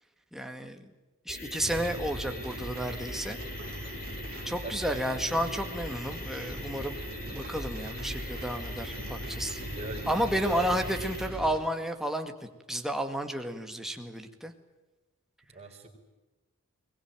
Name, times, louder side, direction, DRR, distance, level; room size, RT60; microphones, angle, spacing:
voice 1, 0.3-0.8 1.3-3.4 4.4-7.0 7.3-9.6 10.1-12.3 12.7-14.5, equal, ahead, 5 dB, 2.0 m, -32 dB
sound 1, 1.3-11.3, left 1 dB, 45° left, 6.2 m, -41 dB
sound 2, 1.6-11.6, right 1 dB, 45° right, 2.7 m, -41 dB
voice 2, 4.6-5.5 9.7-11.1 15.5-15.9, right 2 dB, 30° right, 1 dB, 5.0 m, -42 dB
22.5 x 21.0 x 9.2 m, 1.1 s
head